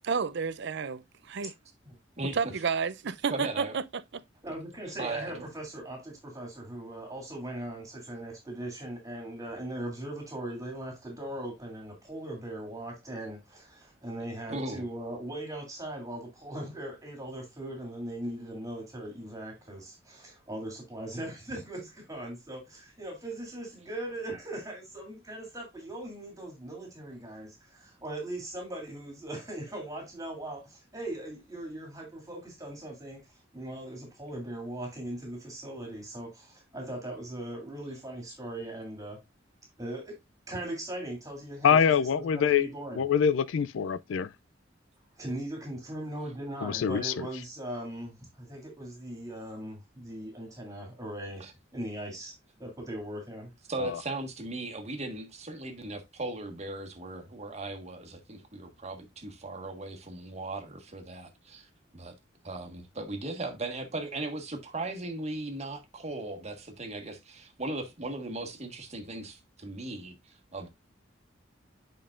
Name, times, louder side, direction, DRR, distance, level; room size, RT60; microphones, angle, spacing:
voice 1, 0.0-1.5 2.3-4.2, right 5 dB, 65° right, 0.6 m, -31 dB
voice 2, 3.3-3.7 5.0-5.5 14.5-14.9 51.4-51.5 53.7-62.1 62.4-70.7, right 2 dB, 35° right, 1.5 m, -37 dB
voice 3, 4.4-39.2 39.8-40.2 40.5-43.1 45.2-52.3 52.6-53.5, right 1 dB, 20° right, 2.7 m, -39 dB
voice 4, 41.6-42.7 43.0-44.3 46.6-47.3 53.8-53.9, left 7 dB, 80° left, 0.4 m, -25 dB
8.7 x 5.3 x 2.5 m
head